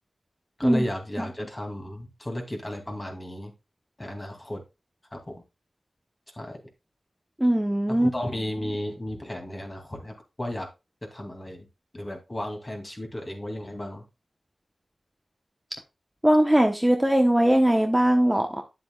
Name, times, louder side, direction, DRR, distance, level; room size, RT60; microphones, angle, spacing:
voice 1, 0.6-3.5 4.0-4.6 5.1-5.4 6.3-6.6 7.9-10.7 11.0-11.7 11.9-14.0, left 1 dB, 30° left, 2 dB, 2.8 m, -34 dB
voice 2, 7.4-8.1 16.2-18.6, right 1 dB, 10° right, 4 dB, 1.1 m, -20 dB
9.5 x 7.7 x 2.4 m, 0.26 s
cardioid pair, 55°, 0 cm